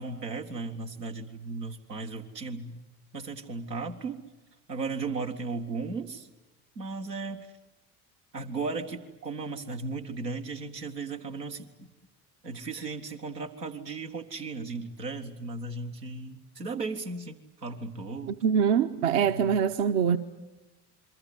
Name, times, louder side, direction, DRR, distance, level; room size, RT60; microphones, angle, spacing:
voice 1, 0.0-2.9 3.1-4.2 4.7-6.3 6.8-7.5 8.3-11.9 12.4-18.4 19.2-19.5, right 4 dB, 85° right, 1.7 m, -36 dB
voice 2, 18.3-20.2, right 7 dB, 55° right, 1.1 m, -24 dB
28.0 x 23.5 x 8.0 m
figure-of-eight pair, 60°, 48 cm